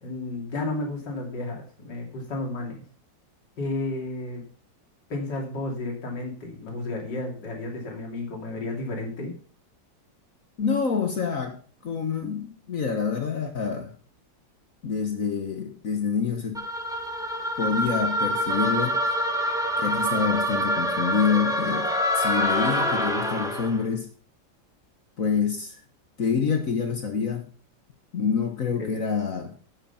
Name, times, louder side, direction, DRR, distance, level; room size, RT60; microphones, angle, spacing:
voice 1, 0.0-2.8 3.6-4.4 5.1-9.3 28.8-28.9, left 2 dB, 70° left, 1 dB, 3.3 m, -32 dB
voice 2, 10.6-11.5 11.8-13.9 14.8-16.6 17.6-19.0 19.8-21.9 22.2-24.1 25.2-25.8 26.2-27.4 28.1-29.5, left 6 dB, 50° left, 5 dB, 1.5 m, -26 dB
sound 1, 16.5-23.8, equal, ahead, 1.5 m, -26 dB
10.5 x 8.0 x 5.6 m, 0.42 s
omnidirectional pair, 2.0 m